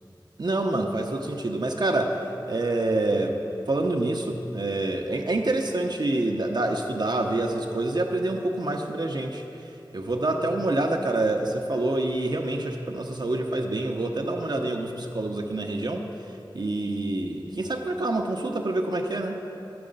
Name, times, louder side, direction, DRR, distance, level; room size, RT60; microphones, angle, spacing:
voice 1, 0.4-2.1 2.5-3.3 3.7-9.4 9.9-16.0 16.5-19.4, right 2 dB, 60° right, 2 dB, 0.6 m, -27 dB
12.0 x 4.7 x 5.3 m, 2.8 s
wide cardioid pair, 50°, 8 cm